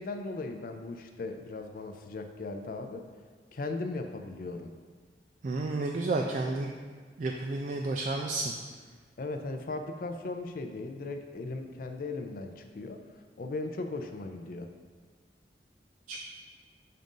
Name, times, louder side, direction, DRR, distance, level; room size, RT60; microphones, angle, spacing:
voice 1, 0.0-3.0 3.5-4.7 9.2-13.0 13.4-14.7, left 3 dB, 50° left, 6 dB, 0.4 m, -37 dB
voice 2, 5.4-6.7 7.2-8.5 16.1-16.2, right 2 dB, 45° right, 1 dB, 0.3 m, -31 dB
7.5 x 2.5 x 5.3 m, 1.5 s
head